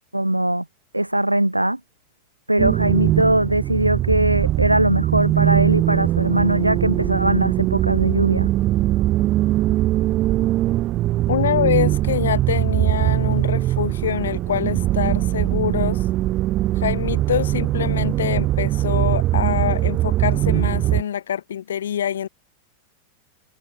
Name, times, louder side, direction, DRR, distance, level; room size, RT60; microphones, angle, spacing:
voice 1, 0.1-0.6 0.9-1.8 2.5-8.5, right 1 dB, 85° right, 1.5 m, -20 dB
sound 1, 2.6-21.0, right 15 dB, 35° right, 0.4 m, -21 dB
voice 2, 11.3-16.0 16.8-22.3, left 9 dB, 65° left, 1.2 m, -25 dB
figure-of-eight pair, 90°, 0 cm